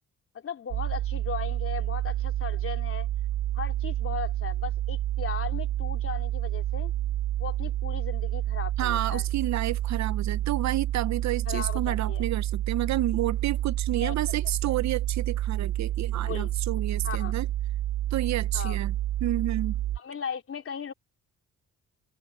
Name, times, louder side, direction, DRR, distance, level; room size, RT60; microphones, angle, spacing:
voice 1, 0.3-3.1 3.5-6.9 7.4-9.2 11.5-12.2 14.0-14.4 14.7-14.8 16.1-16.5 17.0-17.3 18.5-18.8 20.0-20.9, left 7 dB, 45° left, 3.3 m, -37 dB
sound 1, 0.7-20.0, right 13 dB, 85° right, 2.2 m, -29 dB
voice 2, 8.8-17.5 18.1-19.0 19.2-19.8, right 13 dB, 65° right, 0.7 m, -30 dB
cardioid pair, 90°, 30 cm